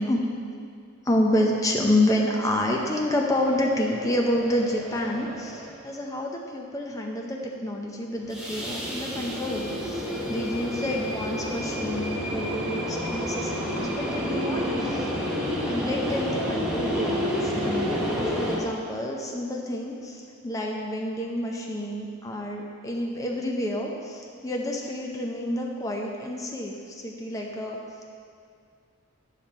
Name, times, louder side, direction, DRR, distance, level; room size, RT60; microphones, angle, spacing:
voice 1, 1.0-15.1 15.6-27.8, left 1 dB, 15° left, 0 dB, 0.6 m, -28 dB
sound 1, 2.7-5.8 8.2-18.6, equal, 5° right, 1.2 m, -30 dB
8.5 x 7.4 x 4.3 m, 2.3 s
head